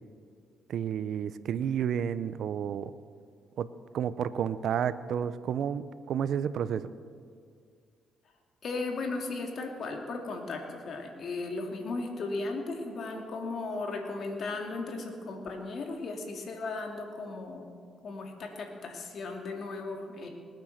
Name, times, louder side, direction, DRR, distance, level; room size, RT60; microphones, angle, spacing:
voice 1, 0.7-2.9 3.6-3.7 3.9-6.9, right 8 dB, 70° right, 14 dB, 0.6 m, -31 dB
voice 2, 8.6-17.7 18.0-20.3, left 3 dB, 55° left, 2 dB, 2.4 m, -36 dB
20.0 x 9.1 x 6.5 m, 2.1 s
cardioid pair, 90°, 0 cm